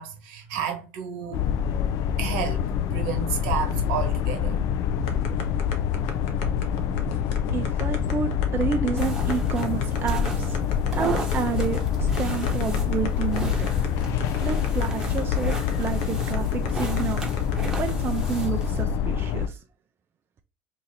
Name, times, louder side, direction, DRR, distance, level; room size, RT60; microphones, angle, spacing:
voice 1, 0.0-1.4 2.2-2.6 2.9-4.6 5.9-6.0 6.6-7.0 7.4-7.5, right 8 dB, 75° right, 1.2 m, -31 dB
sound 1, 1.3-19.5, left 8 dB, 60° left, 0.4 m, -26 dB
sound 2, 5.1-17.9, left 5 dB, 75° left, 0.8 m, -37 dB
voice 2, 7.5-10.6 10.9-13.7 14.4-17.2 17.8-19.6, right 7 dB, 35° right, 0.4 m, -30 dB
sound 3, 9.0-18.8, right 2 dB, 10° right, 1.1 m, -35 dB
2.8 x 2.5 x 4.1 m
hypercardioid pair, 80°, 6 cm